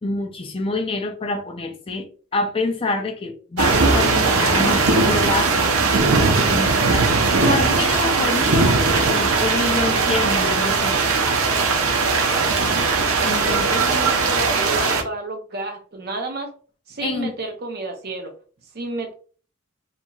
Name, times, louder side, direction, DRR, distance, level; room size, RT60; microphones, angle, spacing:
voice 1, 0.0-2.1 2.3-5.5 6.5-7.1 7.4-11.6 13.2-13.8 17.0-17.3, left 3 dB, 25° left, 0.4 m, -26 dB
sound 1, 3.6-15.0, right 4 dB, 85° right, 0.7 m, -19 dB
voice 2, 13.2-16.5 16.9-18.3 18.7-19.1, right 2 dB, 50° right, 0.6 m, -30 dB
2.9 x 2.7 x 2.3 m
head